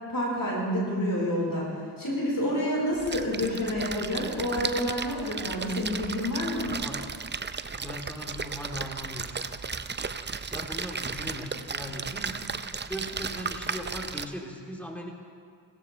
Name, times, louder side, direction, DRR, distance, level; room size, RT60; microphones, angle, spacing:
voice 1, 0.1-1.7 2.0-6.7, equal, 50° left, -4 dB, 4.2 m, -28 dB
Splash splatter, 2.9-14.3, right 5 dB, 25° right, 0.5 m, -35 dB
voice 2, 6.2-7.0 7.7-9.5 10.4-12.5 12.8-15.1, equal, 5° left, -1 dB, 2.8 m, -39 dB
16.5 x 16.0 x 3.2 m, 2.1 s
cardioid pair, 40°, 42 cm